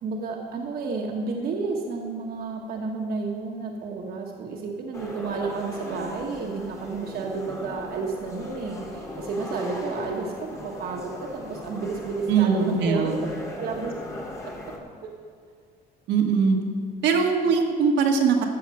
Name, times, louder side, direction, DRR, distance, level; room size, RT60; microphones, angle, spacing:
voice 1, 0.0-13.1 13.6-13.9 14.2-14.5, right 4 dB, 60° right, 1 dB, 1.2 m, -31 dB
sound 1, 4.9-14.8, left 1 dB, 15° left, 1.6 m, -38 dB
voice 2, 12.3-13.2 16.1-16.6 17.0-18.4, right 5 dB, 85° right, 1 dB, 1.5 m, -21 dB
14.5 x 6.5 x 5.6 m, 2.1 s
cardioid pair, 145°, 18 cm